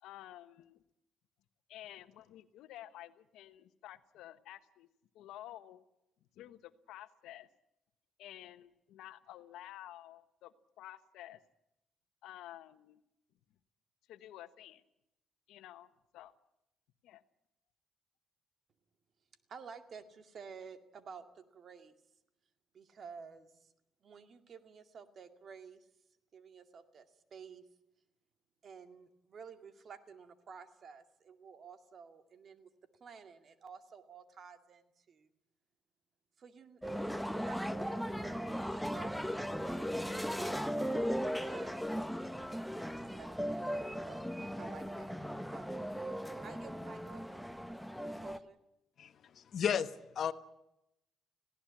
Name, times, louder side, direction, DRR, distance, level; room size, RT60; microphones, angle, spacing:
voice 1, 0.0-0.8 1.7-4.9 5.1-5.8 6.3-7.5 8.2-11.4 12.2-13.0 14.1-14.8 15.5-16.3 17.0-17.2, left 13 dB, 90° left, 12 dB, 1.1 m, -51 dB
voice 2, 19.5-21.9 22.7-23.7 24.0-25.9 26.3-27.6 28.6-32.7 33.0-35.3 36.4-42.1 42.9-45.8 46.4-47.4 48.0-48.6, right 6 dB, 55° right, 9 dB, 2.2 m, -53 dB
sound 1, 36.8-48.4, equal, ahead, 1.0 m, -37 dB
voice 3, 49.0-50.3, left 8 dB, 60° left, 13 dB, 1.2 m, -34 dB
19.5 x 16.5 x 10.0 m, 0.86 s
cardioid pair, 90°, 0 cm